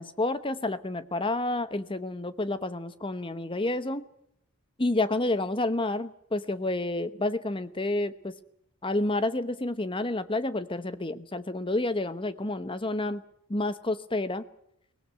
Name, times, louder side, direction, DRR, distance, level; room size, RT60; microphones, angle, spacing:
voice 1, 0.0-4.0 4.8-8.3 8.8-13.2 13.5-14.4, left 2 dB, 25° left, 13 dB, 1.0 m, -29 dB
23.0 x 18.5 x 8.3 m, 0.75 s
head